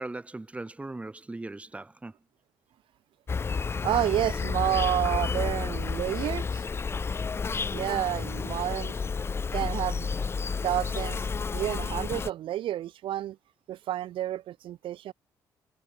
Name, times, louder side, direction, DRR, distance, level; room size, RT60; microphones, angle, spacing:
voice 1, 0.0-2.1, right 2 dB, 15° right, 0.7 m, -39 dB
Insect, 3.3-12.3, left 5 dB, 25° left, 0.3 m, -31 dB
voice 2, 3.8-6.7 7.7-8.9 9.5-10.1 10.4-13.4 13.7-15.1, right 12 dB, 65° right, 0.5 m, -30 dB
hypercardioid pair, 55°, 10 cm